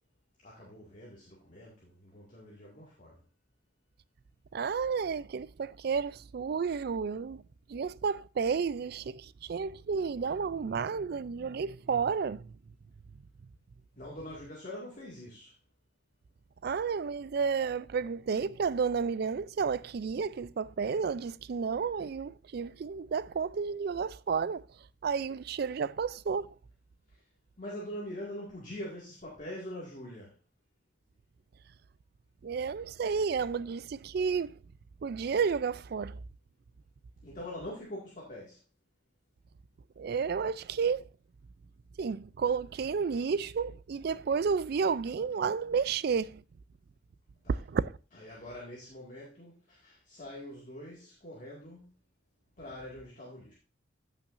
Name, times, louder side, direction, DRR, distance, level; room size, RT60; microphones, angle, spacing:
voice 1, 0.4-3.2 14.0-15.5 27.6-30.3 37.2-38.6 47.4-47.5 48.2-51.9 52.6-53.5, left 1 dB, 45° left, 2.1 m, -44 dB
voice 2, 4.5-7.4 7.7-12.5 16.6-24.7 25.0-26.5 32.4-34.5 35.0-36.2 40.0-41.1 42.0-46.4 47.5-47.9, right 5 dB, 55° right, 0.4 m, -31 dB
14.0 x 5.8 x 2.6 m
head